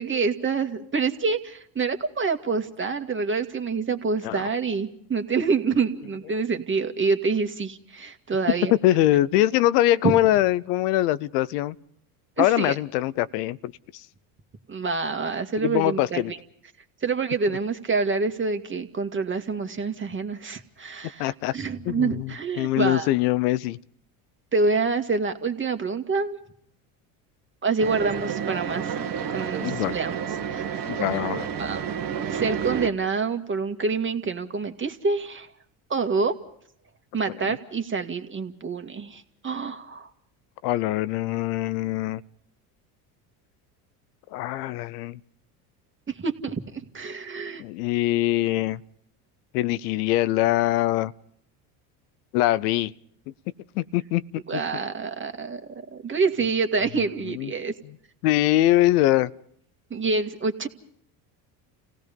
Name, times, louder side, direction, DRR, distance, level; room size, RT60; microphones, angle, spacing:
voice 1, 0.0-8.7 10.0-10.2 12.4-12.7 14.7-16.4 17.0-23.1 24.5-26.4 27.6-29.0 29.3-30.2 30.5-30.8 31.6-31.8 32.3-35.5 35.9-36.4 37.1-40.1 46.1-47.6 54.5-57.7 59.9-60.7, right 4 dB, 25° right, 2.1 m, -27 dB
voice 2, 8.8-11.8 12.4-14.0 15.6-16.3 21.2-21.5 21.9-22.3 22.6-23.8 29.6-29.9 30.8-31.5 37.5-37.6 40.6-42.2 44.3-45.2 47.6-48.8 49.5-51.1 52.3-52.9 53.7-54.4 57.3-57.5 58.2-59.3, left 15 dB, 80° left, 0.8 m, -23 dB
sound 1, 27.8-32.9, right 8 dB, 45° right, 1.7 m, -30 dB
29.5 x 17.0 x 5.3 m
supercardioid pair, 90°, 46 cm